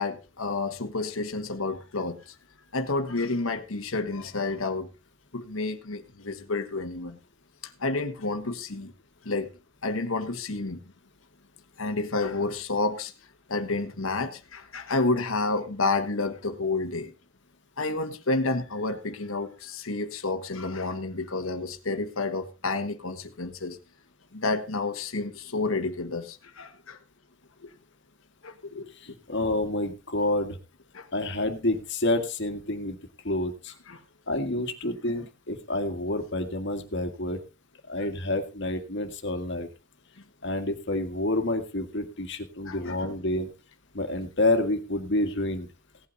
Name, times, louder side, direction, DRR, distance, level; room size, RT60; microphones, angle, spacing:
voice 1, 0.0-2.3 2.7-4.9 5.3-7.2 7.6-8.9 9.2-9.5 9.8-10.8 11.8-13.1 13.5-17.1 17.8-23.8 24.3-27.0 27.6-27.7 28.4-29.1 30.9-31.1 33.9-34.0 35.1-35.2 42.6-43.0, left 3 dB, 75° left, 6 dB, 1.5 m, -30 dB
voice 2, 29.0-30.6 31.1-33.0 33.2-33.7 34.3-37.4 37.9-39.7 40.4-43.5 43.9-45.7, left 1 dB, 60° left, 7 dB, 1.9 m, -28 dB
17.0 x 8.6 x 4.0 m, 0.30 s
head